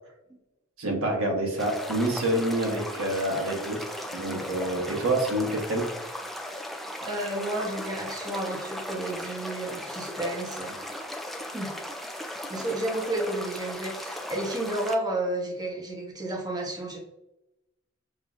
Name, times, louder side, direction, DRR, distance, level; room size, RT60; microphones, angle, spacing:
voice 1, 0.8-3.8 4.1-5.8, right 1 dB, 85° right, 0 dB, 1.2 m, -27 dB
sound 1, 1.6-15.0, equal, ahead, 0.4 m, -37 dB
voice 2, 7.0-10.7 11.5-11.7 12.5-17.0, right 1 dB, 20° right, -1 dB, 0.8 m, -31 dB
6.8 x 2.7 x 2.4 m, 0.90 s
head